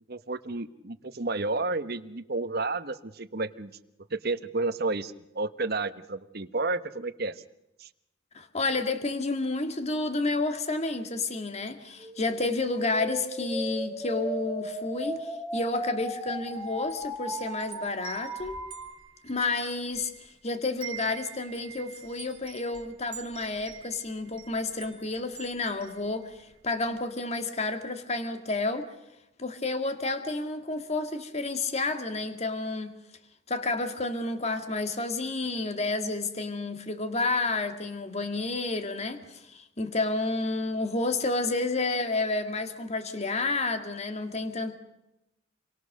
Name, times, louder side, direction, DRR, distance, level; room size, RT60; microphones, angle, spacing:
voice 1, 0.1-3.8 4.1-7.4 7.8-7.9, right 3 dB, 55° right, 10 dB, 1.3 m, -31 dB
voice 2, 8.3-18.6 19.2-28.9 29.4-33.0 33.5-44.7, left 3 dB, 35° left, 8 dB, 1.9 m, -30 dB
sound 1, 11.9-18.9, equal, 5° left, 5.4 m, -36 dB
Wind chime, 16.3-20.4 20.6-26.6, right 9 dB, 25° right, 4.7 m, -47 dB
28.5 x 23.5 x 6.6 m, 0.91 s
head